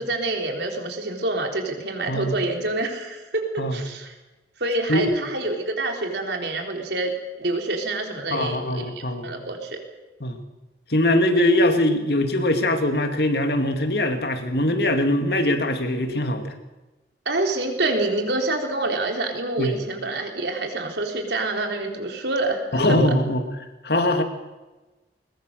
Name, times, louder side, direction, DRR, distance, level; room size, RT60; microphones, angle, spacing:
voice 1, 0.0-4.1 4.6-9.8 17.3-22.8, right 2 dB, 75° right, 3 dB, 4.0 m, -27 dB
voice 2, 8.3-9.3 10.2-10.4 10.9-16.5 19.6-19.8 22.7-23.5 23.8-24.2, left 1 dB, 65° left, 6 dB, 2.4 m, -22 dB
21.0 x 21.0 x 6.6 m, 1.1 s
head